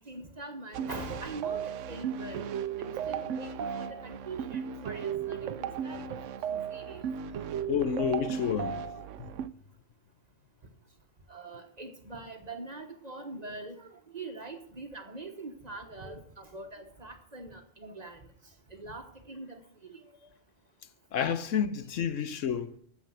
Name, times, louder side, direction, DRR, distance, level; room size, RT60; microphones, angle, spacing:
voice 1, 0.0-2.5 2.8-6.0 6.5-7.1 11.3-18.2 18.7-20.0, right 2 dB, 35° right, 1.2 m, -43 dB
sound 1, 0.7-9.5, right 8 dB, 75° right, 0.9 m, -35 dB
voice 2, 7.7-8.8 9.2-9.4 21.1-22.8, left 8 dB, 75° left, 1.1 m, -30 dB
9.7 x 7.3 x 7.5 m
omnidirectional pair, 1.4 m